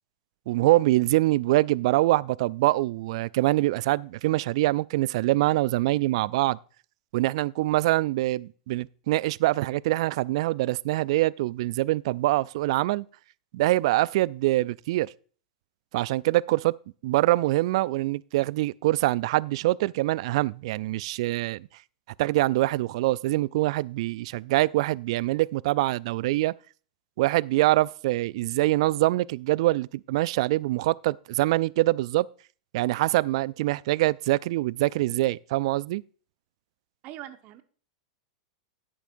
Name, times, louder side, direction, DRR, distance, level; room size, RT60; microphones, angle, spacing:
voice 1, 0.5-6.6 7.1-13.0 13.5-15.1 15.9-16.7 17.0-21.7 22.2-26.5 27.2-32.3 32.7-36.0, right 18 dB, 60° right, 0.3 m, -24 dB
voice 2, 37.0-37.6, right 13 dB, 45° right, 1.2 m, -41 dB
12.5 x 10.0 x 2.6 m
hypercardioid pair, 100°, 4 cm